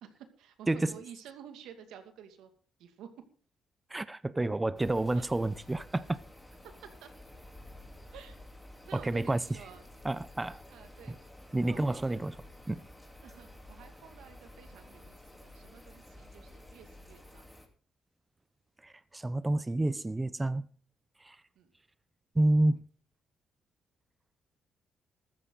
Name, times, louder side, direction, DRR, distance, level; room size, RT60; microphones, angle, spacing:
voice 1, 0.0-2.5 2.8-3.3 5.1-5.3 6.6-7.1 8.1-8.4 8.9-9.9 10.7-11.2 11.6-12.2 13.2-17.6 21.5-21.7, right 8 dB, 85° right, 2.3 m, -51 dB
voice 2, 3.9-6.1 9.0-9.4 10.0-10.6 11.5-12.4 12.7-12.8 18.8-20.6 21.2-21.4 22.3-22.8, right 2 dB, 15° right, 0.6 m, -29 dB
sound 1, 4.8-17.7, left 1 dB, 10° left, 3.4 m, -52 dB
14.0 x 13.5 x 4.0 m
cardioid pair, 90°, 0 cm